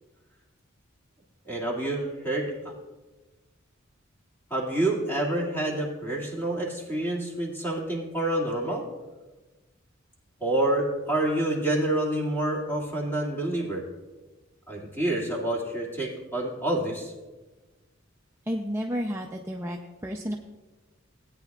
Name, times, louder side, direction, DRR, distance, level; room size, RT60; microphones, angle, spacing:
voice 1, 1.5-2.5 4.5-8.8 10.4-13.8 14.7-17.1, right 1 dB, 10° left, -3 dB, 2.2 m, -28 dB
voice 2, 18.5-20.4, equal, 15° right, 1 dB, 0.5 m, -31 dB
17.5 x 9.1 x 2.4 m, 1.2 s
head